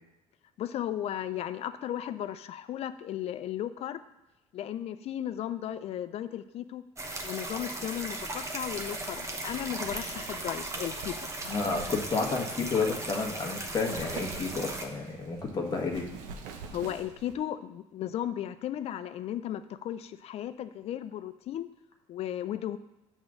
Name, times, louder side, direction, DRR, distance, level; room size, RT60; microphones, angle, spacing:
voice 1, 0.6-4.0 4.5-6.8 7.2-11.3 16.7-21.7 22.1-22.8, left 11 dB, 55° left, 12 dB, 0.5 m, -35 dB
sound 1, 7.0-14.9, right 2 dB, 25° right, 1.0 m, -37 dB
Wind, 8.7-17.4, right 5 dB, 85° right, 0.8 m, -46 dB
voice 2, 11.4-16.1, left 4 dB, 35° left, 0 dB, 1.4 m, -31 dB
7.9 x 3.7 x 6.4 m, 0.99 s
cardioid pair, 100°, 13 cm